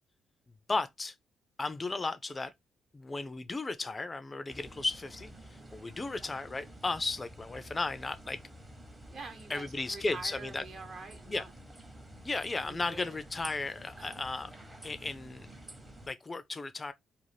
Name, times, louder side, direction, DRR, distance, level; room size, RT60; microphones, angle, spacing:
voice 1, 0.7-1.1 1.6-2.5 2.9-8.4 9.5-10.6 11.3-11.4 12.2-14.5 14.8-15.5 16.1-16.9, left 3 dB, 25° left, 0.3 m, -35 dB
sound 1, 4.5-16.1, right 1 dB, 20° right, 0.8 m, -50 dB
voice 2, 9.1-11.5 12.6-13.2 14.0-14.2, right 4 dB, 55° right, 0.9 m, -46 dB
2.5 x 2.3 x 3.1 m
cardioid pair, 90°, 0 cm